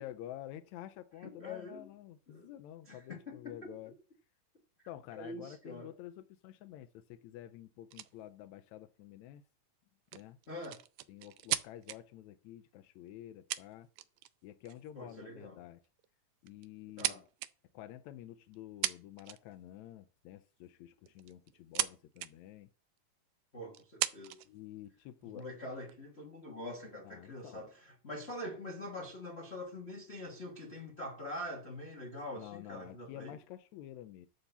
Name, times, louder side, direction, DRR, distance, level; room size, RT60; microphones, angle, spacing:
voice 1, 0.0-4.0 4.9-9.4 10.1-10.4 11.1-13.9 14.4-15.8 16.4-17.3 17.7-22.7 24.4-25.5 27.0-27.7 32.4-34.3, left 13 dB, 80° left, 1.7 m, -49 dB
voice 2, 1.2-1.9 2.3-2.5 2.9-3.7 5.1-5.9 10.5-10.8 14.9-15.6 17.0-17.2 23.5-24.4 25.2-33.4, left 1 dB, 60° left, 0.6 m, -44 dB
sound 1, 7.9-8.1 10.1-12.0 13.1-13.2 13.5-14.3 14.7-14.9 15.8-16.1 16.5-17.5 18.5-18.6 18.8-19.6 21.1-21.9 22.2-22.3 23.0-23.1 23.7-24.5 25.2-25.9, right 14 dB, 80° right, 1.7 m, -37 dB
11.5 x 3.9 x 6.9 m
omnidirectional pair, 3.8 m